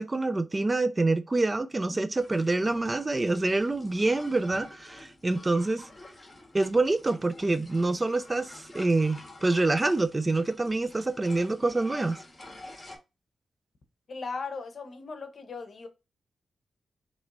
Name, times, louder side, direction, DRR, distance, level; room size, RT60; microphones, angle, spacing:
voice 1, 0.0-5.9 6.5-12.2, right 2 dB, 25° right, 0.4 m, -26 dB
sound 1, 2.2-13.0, left 2 dB, 25° left, 1.5 m, -49 dB
voice 2, 14.1-15.9, left 4 dB, 55° left, 0.9 m, -37 dB
4.3 x 3.0 x 2.5 m
cardioid pair, 80°, 0 cm